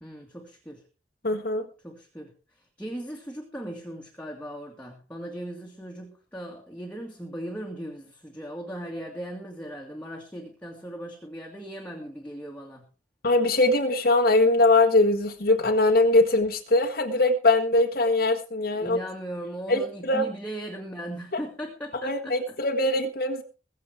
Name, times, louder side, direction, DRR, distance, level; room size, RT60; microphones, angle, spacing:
voice 1, 0.0-0.8 1.8-12.9 18.8-22.6, right 1 dB, 5° left, 0 dB, 2.3 m, -38 dB
voice 2, 1.2-1.6 13.2-19.0 19.7-20.2 21.9-23.4, left 2 dB, 50° left, 4 dB, 1.6 m, -22 dB
22.0 x 7.6 x 4.7 m, 0.35 s
head